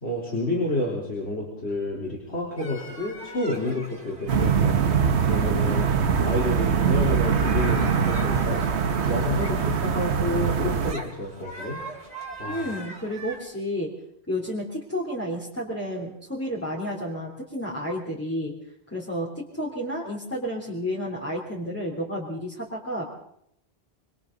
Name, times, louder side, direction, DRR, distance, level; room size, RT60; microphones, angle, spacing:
voice 1, 0.0-5.0 5.3-5.9 6.2-8.6 9.1-11.8 12.4-12.7, left 2 dB, 75° left, -4 dB, 4.3 m, -29 dB
sound 1, 2.6-13.4, right 1 dB, 40° right, 3.2 m, -42 dB
sound 2, 4.3-10.9, right 6 dB, 85° right, 1.4 m, -23 dB
voice 2, 12.5-13.9 14.3-18.5 18.9-23.1, equal, 10° left, -6 dB, 3.5 m, -31 dB
26.5 x 24.5 x 4.0 m, 0.73 s
omnidirectional pair, 1.1 m